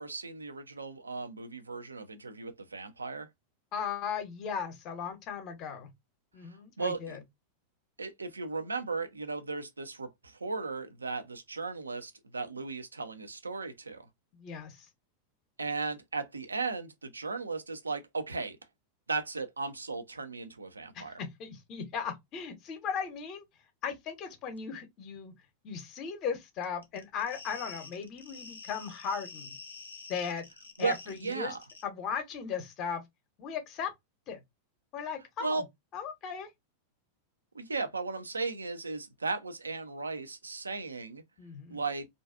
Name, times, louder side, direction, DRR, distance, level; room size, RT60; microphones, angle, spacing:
voice 1, 0.0-3.3 6.4-7.2 8.0-14.1 15.6-18.6 19.1-21.2 30.8-31.6 35.4-35.6 37.5-41.2 41.7-42.1, right 4 dB, 75° right, 0.5 m, -36 dB
voice 2, 3.7-5.9 6.3-7.2 14.3-14.9 20.9-23.4 23.8-25.3 25.6-29.6 30.1-30.5 30.8-31.5 31.8-33.0 33.4-33.9 34.3-34.4 34.9-35.6 35.9-36.5 41.4-41.8, left 6 dB, 35° left, 0.8 m, -37 dB
sound 1, 26.6-31.3 31.6-31.8, left 4 dB, 75° left, 0.6 m, -48 dB
2.5 x 2.3 x 2.3 m
figure-of-eight pair, 90°, 0 cm